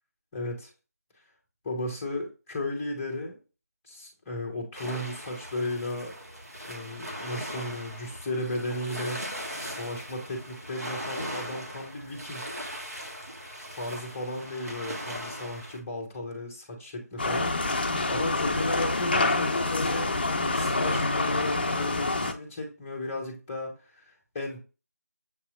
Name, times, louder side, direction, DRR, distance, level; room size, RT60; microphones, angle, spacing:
voice 1, 0.3-0.7 1.6-3.4 3.9-6.2 6.7-12.5 13.7-23.8 24.1-24.6, left 1 dB, 10° left, 0.8 m, -35 dB
sound 1, 4.7-15.8, equal, 65° right, 1.4 m, -39 dB
sound 2, 17.2-22.3, left 2 dB, 35° left, 0.5 m, -27 dB
7.2 x 2.9 x 2.4 m
figure-of-eight pair, 165°, 9 cm